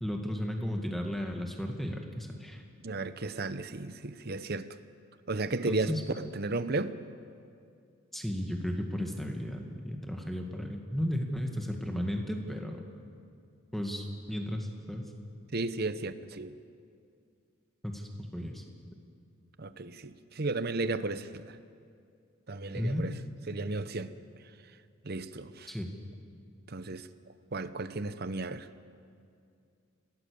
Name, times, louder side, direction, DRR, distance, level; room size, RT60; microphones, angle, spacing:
voice 1, 0.0-2.6 5.7-6.0 8.1-12.8 13.7-15.1 17.8-18.6 22.7-23.1 25.7-25.9, equal, ahead, 2 dB, 2.0 m, -34 dB
voice 2, 2.8-4.7 5.3-7.0 15.5-16.5 19.6-21.6 22.5-23.1 23.5-24.1 25.0-25.7 26.7-27.1 27.5-28.7, right 3 dB, 45° right, 12 dB, 0.8 m, -34 dB
28.0 x 18.0 x 7.0 m, 2.4 s
head